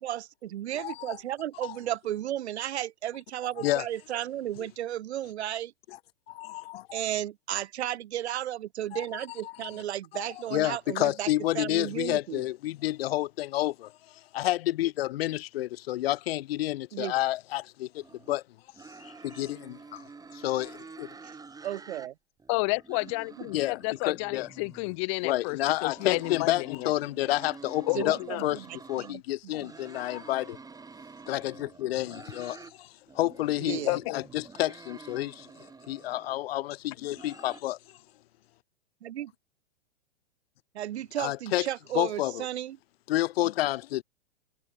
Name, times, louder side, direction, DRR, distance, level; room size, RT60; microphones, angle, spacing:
voice 1, 0.0-5.7 6.9-12.4 16.9-17.1 21.6-22.1 23.4-23.5 27.9-29.2 29.6-29.7 33.6-34.0 39.0-39.3 40.7-42.8, right 12 dB, 70° right, 1.1 m, -34 dB
voice 2, 0.8-1.2 1.6-1.8 3.6-3.9 6.3-7.0 8.9-9.0 10.1-10.2 10.5-13.9 14.3-18.4 19.0-20.0 20.3-21.1 23.5-23.8 24.1-24.5 25.2-28.6 28.9-30.6 31.3-32.9 33.1-35.5 35.9-37.8 41.2-41.7 41.9-42.4 43.1-44.0, left 15 dB, 60° left, 0.7 m, -30 dB
sound 1, 18.0-18.4 18.7-22.1 22.4-25.0 25.7-29.1 29.5-32.7 33.1-36.4 36.8-37.6, right 4 dB, 10° right, 5.6 m, -49 dB
voice 3, 22.5-26.9 27.9-28.5 33.9-34.2, left 31 dB, 30° left, 0.4 m, -31 dB
hypercardioid pair, 125°, 34 cm